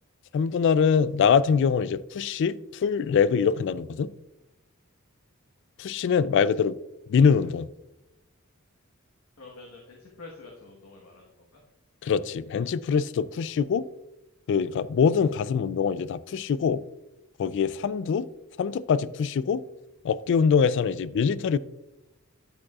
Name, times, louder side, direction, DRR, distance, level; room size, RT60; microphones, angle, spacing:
voice 1, 0.3-4.1 5.8-6.8 7.1-7.7 12.0-13.9 14.5-16.8 17.4-18.3 18.6-19.6 20.0-21.6, left 6 dB, 60° left, 0.3 m, -23 dB
voice 2, 9.4-11.6, left 3 dB, 90° left, 1.3 m, -47 dB
12.0 x 5.2 x 2.4 m
head